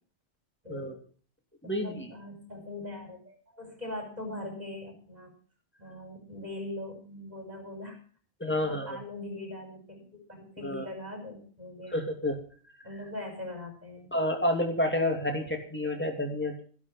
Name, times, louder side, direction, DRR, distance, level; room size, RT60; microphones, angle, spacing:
voice 1, 0.6-1.0 1.6-5.3 5.8-8.0 8.5-11.9 12.8-14.1, left 1 dB, 35° right, 3 dB, 6.3 m, -41 dB
voice 2, 1.6-2.1 8.4-9.0 10.6-10.8 11.9-12.4 14.1-16.6, left 1 dB, 10° left, 3 dB, 2.9 m, -29 dB
13.5 x 12.0 x 5.8 m, 0.43 s
omnidirectional pair, 1.2 m